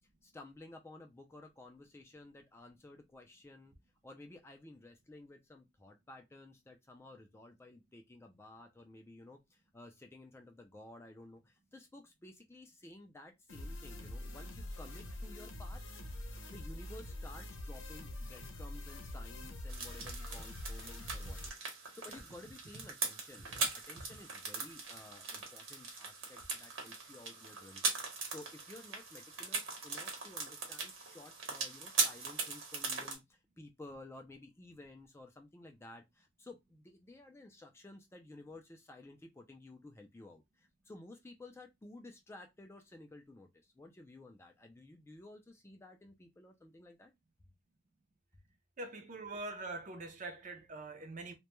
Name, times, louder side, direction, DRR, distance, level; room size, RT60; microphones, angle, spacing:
voice 1, 0.2-3.7 4.0-15.8 16.2-47.1, left 2 dB, 15° left, 0.3 m, -54 dB
sound 1, 13.5-21.5, left 1 dB, 85° left, 0.7 m, -45 dB
sound 2, 19.7-33.2, right 4 dB, 80° right, 0.9 m, -40 dB
voice 2, 48.8-51.3, right 2 dB, 40° right, 0.5 m, -44 dB
2.2 x 2.1 x 2.9 m
head